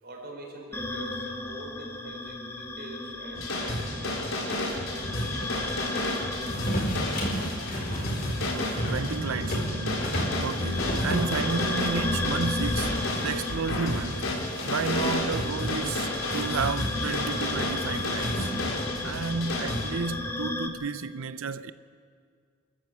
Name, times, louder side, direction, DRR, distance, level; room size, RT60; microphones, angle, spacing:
voice 1, 0.0-5.5, right 1 dB, 50° right, 4.5 m, -44 dB
sound 1, 0.7-20.7, left 2 dB, 10° left, 1.2 m, -35 dB
sound 2, 3.3-19.9, left 1 dB, 75° left, 4.2 m, -31 dB
sound 3, 6.4-13.6 14.0-15.5 16.3-18.9, equal, 45° left, 4.4 m, -35 dB
voice 2, 8.5-14.4 14.7-18.5 19.0-21.7, right 5 dB, 80° right, 0.6 m, -32 dB
25.0 x 14.0 x 8.0 m
head